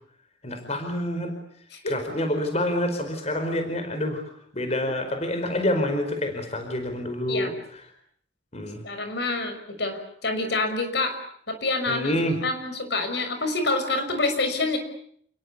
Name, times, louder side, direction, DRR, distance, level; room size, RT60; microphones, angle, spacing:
voice 1, 0.4-1.3 1.9-4.2 4.5-7.5 8.5-8.8 11.9-12.4, left 1 dB, 35° left, 6 dB, 4.8 m, -27 dB
voice 2, 8.8-11.2 11.5-12.1 12.4-14.8, left 2 dB, 60° left, 7 dB, 6.1 m, -27 dB
29.5 x 22.0 x 8.5 m, 0.65 s
head